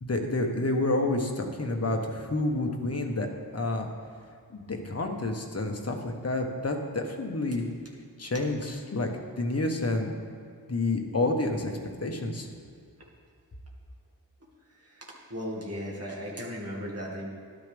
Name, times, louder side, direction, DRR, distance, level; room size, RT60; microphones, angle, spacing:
voice 1, 0.0-3.3 3.5-3.9 4.5-7.7 8.2-10.1 10.7-11.7 12.0-12.5, left 2 dB, 40° left, 2 dB, 1.3 m, -29 dB
voice 2, 14.8-17.3, equal, 40° right, -3 dB, 2.1 m, -36 dB
13.0 x 12.0 x 3.5 m, 2.2 s
wide cardioid pair, 90°, 37 cm